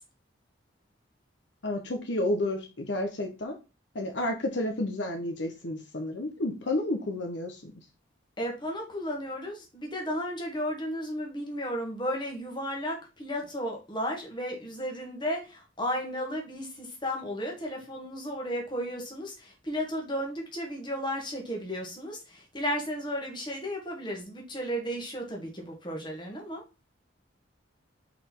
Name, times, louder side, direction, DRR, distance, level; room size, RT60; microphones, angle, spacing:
voice 1, 1.6-3.5 3.9-7.7, left 1 dB, 65° left, 3 dB, 0.9 m, -31 dB
voice 2, 8.4-26.6, equal, 25° left, 0 dB, 1.6 m, -34 dB
5.0 x 4.2 x 4.6 m, 0.29 s
head